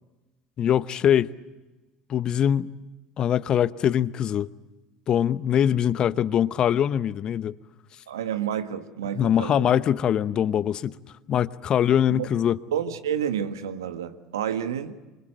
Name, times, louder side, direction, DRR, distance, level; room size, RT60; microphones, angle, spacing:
voice 1, 0.6-1.3 2.1-2.7 3.2-4.5 5.1-7.6 9.1-10.9 11.3-12.6, left 9 dB, 45° left, 0.9 m, -22 dB
voice 2, 8.1-9.7 12.1-12.3 12.7-15.0, right 9 dB, 80° right, 1.4 m, -29 dB
26.0 x 26.0 x 7.7 m
hypercardioid pair, 70°, 2 cm